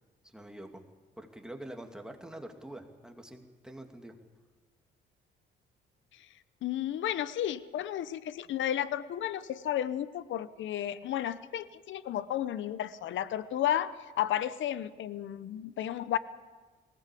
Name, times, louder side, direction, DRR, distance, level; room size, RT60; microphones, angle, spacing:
voice 1, 0.2-0.8 1.2-4.2, right 1 dB, 5° right, 4 dB, 2.5 m, -45 dB
voice 2, 6.6-16.2, left 11 dB, 75° left, 16 dB, 0.9 m, -33 dB
19.5 x 17.5 x 8.4 m, 1.3 s
cardioid pair, 90°, 20 cm